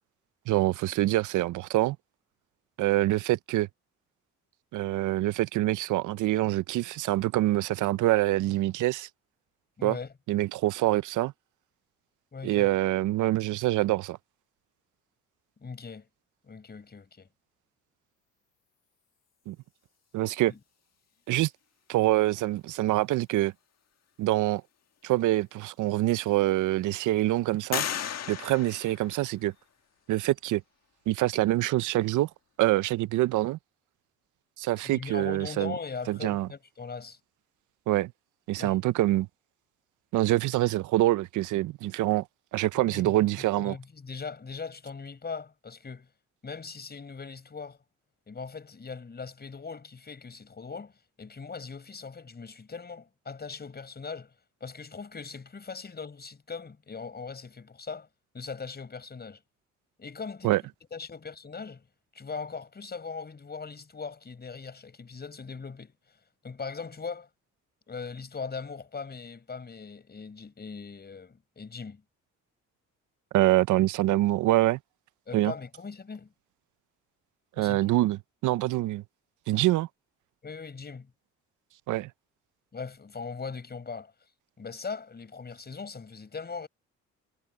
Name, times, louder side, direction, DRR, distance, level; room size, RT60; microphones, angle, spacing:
voice 1, 0.5-2.0 2.8-3.7 4.7-9.1 9.8-10.0 10.3-11.3 12.4-14.2 19.5-19.6 20.1-20.5 21.3-21.5 21.9-23.5 24.2-24.6 25.0-27.8 28.3-29.5 30.1-30.6 31.1-32.3 32.6-33.6 34.6-35.8 36.1-36.5 37.9-38.1 38.5-39.3 40.1-42.2 42.5-43.7 60.4-60.6 73.3-74.8 75.3-75.5 77.6-79.0 79.5-79.9 81.9-82.1, right 16 dB, 80° right, 0.6 m, -25 dB
voice 2, 9.8-10.1 12.3-12.7 15.6-16.1 16.4-17.3 20.5-20.6 34.8-37.2 38.6-38.8 42.8-43.1 43.6-46.1 46.4-47.8 48.3-50.9 51.2-54.3 54.6-58.1 58.3-59.4 60.0-60.6 60.9-61.8 62.1-65.9 66.4-67.3 67.9-72.0 75.3-76.3 77.6-77.8 80.4-81.1 82.7-84.1 84.6-86.7, left 5 dB, 35° left, 5.8 m, -40 dB
sound 1, 25.5-25.6 26.1-26.8 27.7-29.7, left 9 dB, 60° left, 1.7 m, -35 dB
cardioid pair, 90°, 30 cm